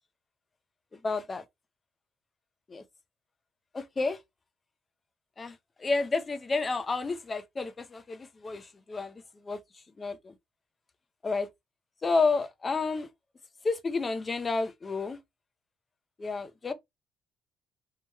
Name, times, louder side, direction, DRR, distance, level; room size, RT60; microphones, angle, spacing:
voice 1, 0.9-1.4 2.7-2.8 3.7-4.2 5.4-10.3 11.2-11.5 12.0-13.1 13.6-15.2 16.2-16.7, left 3 dB, 25° left, 0.7 m, -31 dB
3.7 x 3.0 x 4.3 m
cardioid pair, 120°, 0 cm